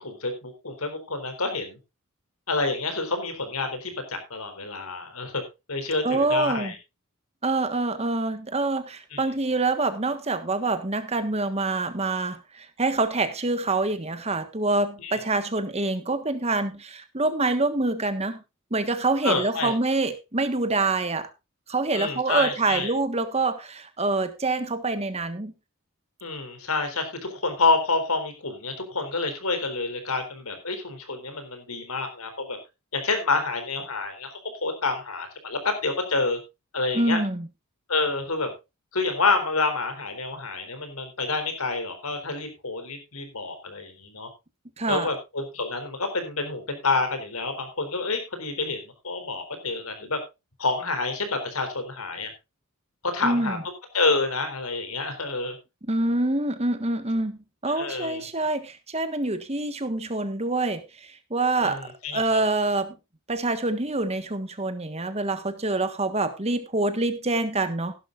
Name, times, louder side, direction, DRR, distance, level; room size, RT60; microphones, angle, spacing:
voice 1, 0.0-1.8 2.5-5.4 5.7-6.8 9.1-9.2 15.0-15.2 19.2-19.7 21.9-22.9 26.2-32.6 32.9-36.4 36.7-37.2 37.9-38.5 38.9-44.3 44.9-50.2 50.6-52.3 53.1-53.6 53.9-55.6 57.7-58.2 61.6-62.4, left 3 dB, 80° left, 7 dB, 4.2 m, -28 dB
voice 2, 6.0-6.7 7.4-18.4 18.7-21.3 21.7-25.5 36.9-37.5 44.8-45.1 53.2-53.6 55.9-61.8 62.1-63.0 63.3-67.9, right 2 dB, 30° right, 10 dB, 1.5 m, -26 dB
16.5 x 11.5 x 2.5 m, 0.26 s
head